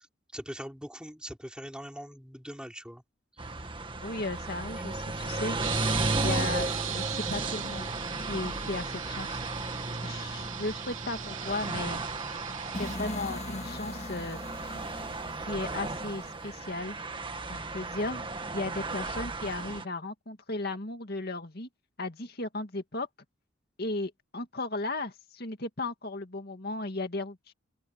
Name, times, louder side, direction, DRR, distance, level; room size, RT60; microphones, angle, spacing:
voice 1, 0.3-3.0 4.9-5.0 6.2-6.4, equal, 5° right, 3.4 m, -42 dB
sound 1, 3.4-19.8, right 2 dB, 25° right, 1.8 m, -34 dB
voice 2, 4.0-5.6 6.2-8.0 8.3-9.4 10.0-12.0 12.8-14.4 15.5-17.0 17.5-18.3 18.5-21.7 22.0-23.1 23.8-27.5, left 2 dB, 50° left, 2.2 m, -35 dB
sound 2, 5.6-13.0, right 11 dB, 80° right, 2.6 m, -39 dB
sound 3, 12.7-16.7, left 1 dB, 35° left, 1.9 m, -40 dB
open air
head